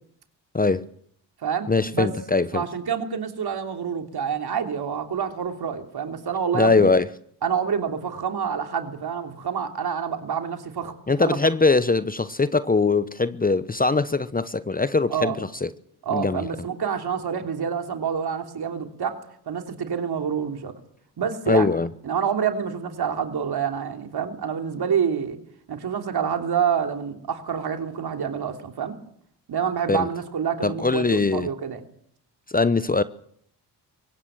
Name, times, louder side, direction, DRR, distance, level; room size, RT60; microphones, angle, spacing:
voice 1, 0.5-0.9 1.7-2.6 6.5-7.1 11.1-15.7 16.1-16.5 21.5-21.9 29.9-30.1 30.6-31.5 32.5-33.0, left 3 dB, 20° left, 0.9 m, -21 dB
voice 2, 1.4-2.1 2.5-6.9 7.4-10.9 11.3-11.4 15.1-15.4 16.0-19.2 19.5-20.7 21.2-21.7 22.0-25.4 25.7-29.0 29.5-31.8, right 7 dB, 55° right, 3.2 m, -27 dB
23.0 x 17.5 x 7.5 m
supercardioid pair, 55°, 44 cm